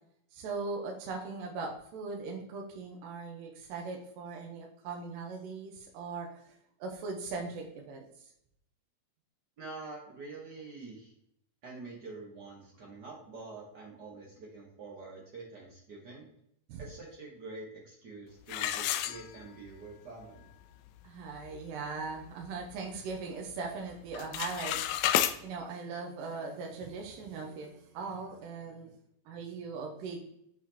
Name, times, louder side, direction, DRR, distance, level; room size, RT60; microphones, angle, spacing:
voice 1, 0.3-8.3 16.7-16.8 21.0-25.1 25.4-28.9 29.3-30.3, right 4 dB, 90° right, 1 dB, 2.5 m, -40 dB
voice 2, 9.6-11.1 11.6-16.3 16.8-20.5, right 3 dB, 65° right, -2 dB, 1.0 m, -46 dB
sound 1, 18.5-19.8 20.2-20.3 20.9-21.0 21.4-21.7 22.1-23.2 23.5-23.8 24.1-25.4, left 12 dB, 85° left, 1.7 m, -31 dB
7.0 x 5.8 x 2.9 m, 0.73 s
omnidirectional pair, 3.8 m